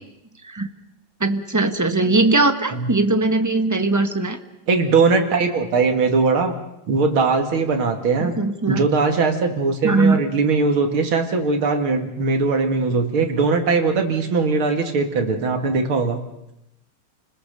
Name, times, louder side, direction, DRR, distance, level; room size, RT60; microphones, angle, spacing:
voice 1, 1.2-4.4 8.2-8.8 9.8-10.2, right 2 dB, 10° right, 8 dB, 0.9 m, -20 dB
voice 2, 4.7-6.5 6.9-8.4 8.7-16.2, right 4 dB, 80° right, 5 dB, 3.0 m, -20 dB
29.5 x 20.5 x 6.8 m, 0.86 s
omnidirectional pair, 2.3 m